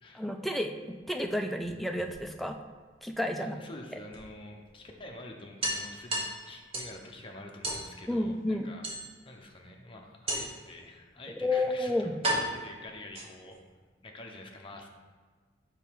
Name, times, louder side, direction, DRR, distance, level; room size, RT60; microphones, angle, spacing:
voice 1, 0.1-2.6 3.0-3.6 8.1-8.7 11.4-12.2, left 1 dB, ahead, 4 dB, 0.3 m, -31 dB
sound 1, 1.6-2.6 4.1-4.2 4.6-4.7 5.0-5.1 5.6-7.0 7.6-7.9 8.8-9.4 10.3-10.7 11.5-11.6 12.2-13.6, right 1 dB, 35° right, 1.1 m, -34 dB
voice 2, 3.4-8.9 9.2-12.1 12.3-13.6 14.0-14.9, left 2 dB, 30° left, 1 dB, 0.7 m, -47 dB
5.5 x 4.0 x 4.6 m, 1.5 s
head